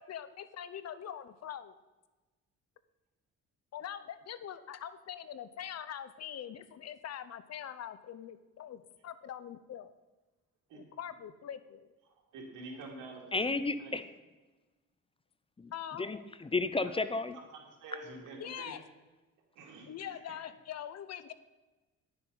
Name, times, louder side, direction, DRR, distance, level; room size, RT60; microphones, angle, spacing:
voice 1, 0.0-1.7 3.7-9.9 10.7-11.9 15.7-16.1 18.4-18.8 19.9-21.3, left 9 dB, 60° left, 13 dB, 0.8 m, -43 dB
voice 2, 12.3-13.2 13.8-13.9 16.8-16.9 17.3-18.7 19.6-20.2, right 3 dB, 90° right, 0 dB, 2.6 m, -47 dB
voice 3, 13.3-14.1 15.6-15.7 16.0-17.4, left 3 dB, 20° left, 12 dB, 0.6 m, -32 dB
10.5 x 6.9 x 5.6 m, 1.2 s
cardioid pair, 90°, 30 cm